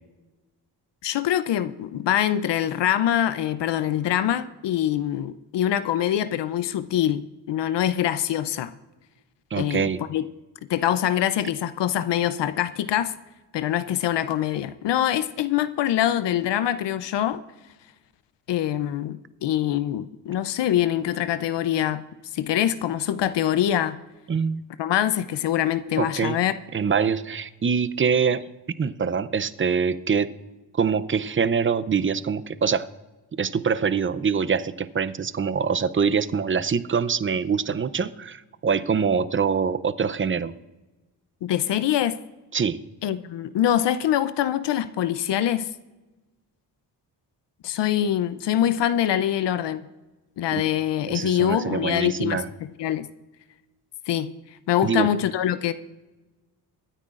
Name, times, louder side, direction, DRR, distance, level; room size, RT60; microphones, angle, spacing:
voice 1, 1.0-8.7 9.6-10.2 10.7-13.1 13.5-17.4 18.5-22.0 22.3-24.0 24.8-26.5 41.4-42.2 43.0-45.7 47.6-49.9 50.4-52.4 52.8-53.1 54.1-54.3 54.7-55.7, left 11 dB, 70° left, 13 dB, 0.7 m, -24 dB
voice 2, 9.5-10.0 24.3-24.6 26.0-26.4 26.7-28.5 28.8-30.3 30.7-32.9 33.3-40.5 42.5-42.8 50.5-50.6 51.1-52.5 54.8-55.1, right 6 dB, 30° right, 16 dB, 0.6 m, -24 dB
24.5 x 9.7 x 2.5 m, 1.1 s
cardioid pair, 65°, 43 cm